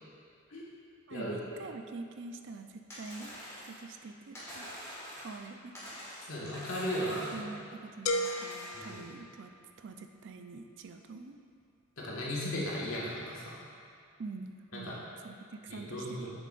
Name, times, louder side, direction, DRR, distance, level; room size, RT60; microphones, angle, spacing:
voice 1, 1.1-3.4 3.6-4.7 5.2-5.8 7.3-11.4 14.2-16.3, right 3 dB, 60° right, 6 dB, 0.4 m, -45 dB
sound 1, 2.9-3.9 4.3-5.5 5.7-7.5 8.1-9.0, equal, 15° left, 1.7 m, -45 dB
voice 2, 6.2-7.5 8.7-9.1 12.0-13.6 14.7-15.0 15.7-16.3, equal, 85° left, -6 dB, 1.6 m, -36 dB
sound 2, 8.1-9.9, left 1 dB, 70° left, 0.4 m, -35 dB
7.6 x 6.9 x 2.5 m, 2.3 s
head